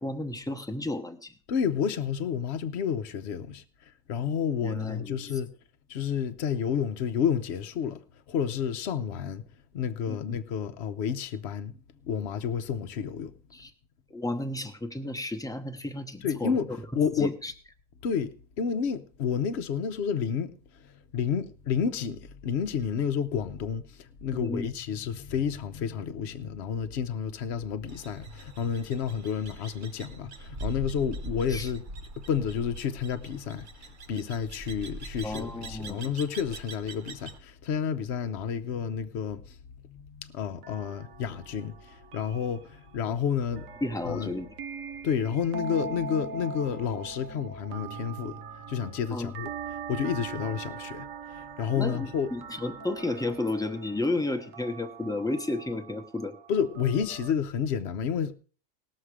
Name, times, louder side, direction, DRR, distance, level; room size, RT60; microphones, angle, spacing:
voice 1, 0.0-1.3 4.6-5.1 10.1-10.2 13.5-13.7 14.1-16.6 16.9-17.5 24.3-24.6 31.5-31.7 35.2-36.0 43.8-44.5 49.1-49.3 51.7-56.3, left 2 dB, 5° left, 0.9 m, -32 dB
voice 2, 1.5-5.5 5.9-9.4 9.7-13.3 16.2-17.3 18.0-20.5 20.8-31.9 32.2-39.6 39.8-43.7 44.0-44.3 45.0-48.4 48.7-52.3 56.5-58.3, left 7 dB, 60° left, 1.0 m, -30 dB
sound 1, 27.9-37.4, right 1 dB, 45° right, 0.9 m, -42 dB
sound 2, 40.6-57.3, right 5 dB, 80° right, 1.2 m, -42 dB
19.0 x 6.6 x 4.8 m
omnidirectional pair, 1.4 m